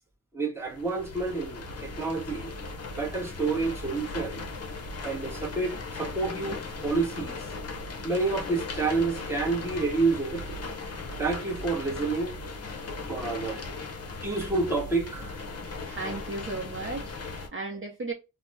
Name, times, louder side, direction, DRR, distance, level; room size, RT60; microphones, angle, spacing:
voice 1, 0.3-2.5 2.9-4.4 5.0-7.5 8.0-10.6 11.2-12.3 13.1-13.6 14.2-15.4, right 3 dB, 5° right, 0.9 m, -29 dB
sound 1, 0.6-17.5, left 3 dB, 45° left, 0.7 m, -38 dB
voice 2, 15.8-18.1, right 3 dB, 35° right, 0.6 m, -35 dB
2.8 x 2.0 x 3.3 m
wide cardioid pair, 115°, 34 cm